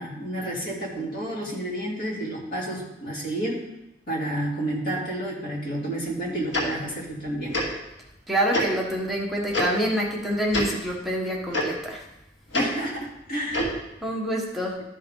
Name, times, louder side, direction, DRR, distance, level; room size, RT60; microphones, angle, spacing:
voice 1, 0.0-3.6 4.1-7.6 12.5-13.7, right 1 dB, 55° left, -5 dB, 2.9 m, -30 dB
Tick-tock, 6.5-6.6 7.5-7.7 8.5-8.7 9.5-9.6 10.5-10.7 11.5-11.6 12.5-12.6 13.5-13.7, left 1 dB, 85° left, 2.5 m, -25 dB
voice 2, 8.3-12.0 14.0-14.8, equal, ahead, -3 dB, 1.4 m, -26 dB
13.0 x 5.5 x 3.8 m, 0.89 s
head